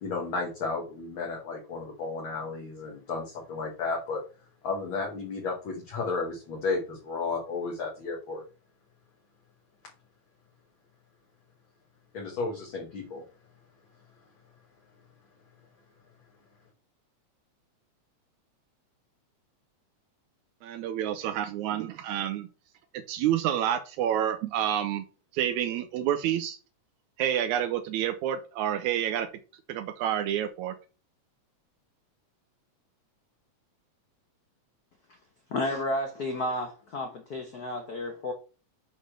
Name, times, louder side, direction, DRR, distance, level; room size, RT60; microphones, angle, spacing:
voice 1, 0.0-4.2 4.6-8.4 12.1-13.2, left 4 dB, 50° left, 2.0 m, -33 dB
voice 2, 20.6-22.5 22.9-25.0 25.3-26.6 27.2-29.3 29.7-30.8, right 10 dB, 85° right, 2.0 m, -28 dB
voice 3, 35.5-38.3, left 1 dB, 85° left, 0.8 m, -32 dB
6.6 x 4.2 x 6.3 m
omnidirectional pair, 3.3 m